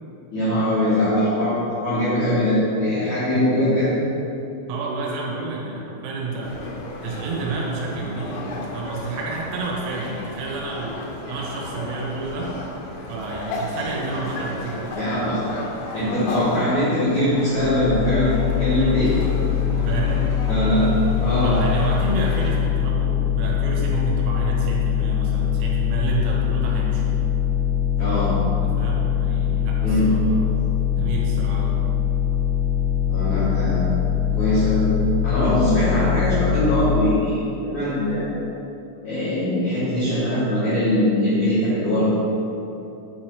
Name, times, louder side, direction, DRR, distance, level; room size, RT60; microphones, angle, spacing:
voice 1, 0.3-3.9 13.7-13.8 14.9-15.4 15.9-19.1 20.5-20.9 21.2-21.6 28.0-28.3 29.8-30.2 33.0-34.0 34.4-34.9 35.2-37.3 37.6-38.3 39.0-42.1, left 1 dB, 60° left, -12 dB, 2.1 m, -21 dB
voice 2, 4.7-6.7 7.0-12.5 13.1-14.9 18.8-19.2 19.8-20.3 21.4-27.0 28.6-30.5 31.0-31.7, right 3 dB, 90° right, -3 dB, 3.8 m, -30 dB
sound 1, 6.4-22.5, left 2 dB, 85° left, 3.4 m, -35 dB
sound 2, 17.6-36.9, left 9 dB, 55° right, 2.2 m, -22 dB
8.8 x 4.4 x 4.7 m, 2.9 s
omnidirectional pair, 5.8 m